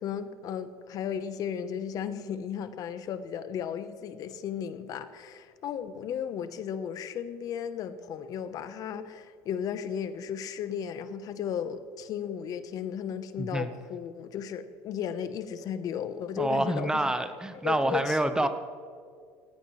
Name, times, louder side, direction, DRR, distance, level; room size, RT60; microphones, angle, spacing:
voice 1, 0.0-17.1 17.6-18.5, left 8 dB, 55° left, 11 dB, 1.0 m, -35 dB
voice 2, 13.4-13.7 16.4-18.5, right 1 dB, 10° right, 10 dB, 1.0 m, -27 dB
17.5 x 17.0 x 3.2 m, 2.1 s
supercardioid pair, 95°, 7 cm